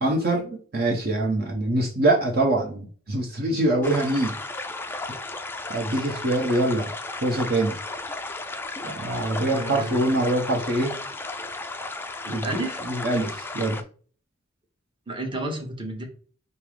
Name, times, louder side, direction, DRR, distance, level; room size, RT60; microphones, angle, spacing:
voice 1, 0.0-4.3 5.7-6.9 7.2-7.8 8.8-11.0 12.3-12.6 12.9-13.8, right 1 dB, 50° right, 1 dB, 0.8 m, -24 dB
sound 1, 3.8-13.8, left 2 dB, 10° left, 0.3 m, -34 dB
voice 2, 9.5-10.1 12.2-12.9 15.1-16.0, right 2 dB, 25° right, 1 dB, 1.1 m, -32 dB
5.3 x 2.0 x 4.8 m, 0.42 s
head